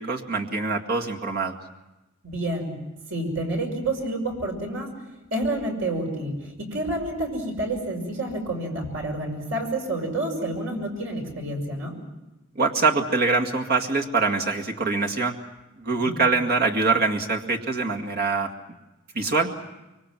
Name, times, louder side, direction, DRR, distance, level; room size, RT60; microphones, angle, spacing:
voice 1, 0.0-1.5 12.6-15.4 15.8-18.5 19.1-19.5, right 4 dB, 45° right, 1 dB, 2.1 m, -24 dB
voice 2, 2.2-2.7 3.1-4.9 5.3-12.0 15.9-16.2, right 1 dB, 65° right, 2 dB, 5.9 m, -29 dB
25.0 x 24.0 x 7.5 m, 1.0 s
head